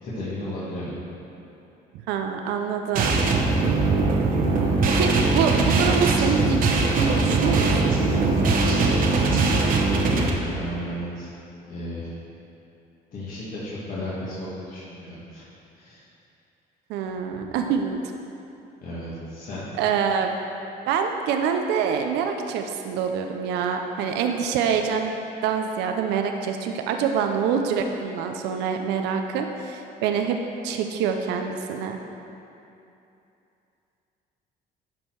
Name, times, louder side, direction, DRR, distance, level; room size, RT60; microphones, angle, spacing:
voice 1, 0.0-0.9 4.4-4.9 9.7-11.3 11.7-12.1 13.1-15.4 15.8-16.0 18.8-19.7, left 1 dB, 55° left, -9 dB, 1.7 m, -34 dB
voice 2, 2.1-3.2 4.9-6.7 6.9-7.9 16.9-18.0 19.8-20.3 20.9-25.1 25.4-30.4 30.6-32.0, right 7 dB, 90° right, 5 dB, 0.6 m, -25 dB
sound 1, 3.0-10.3, right 3 dB, 55° right, 1.0 m, -21 dB
11.5 x 4.5 x 4.6 m, 2.8 s
cardioid pair, 110°, 17 cm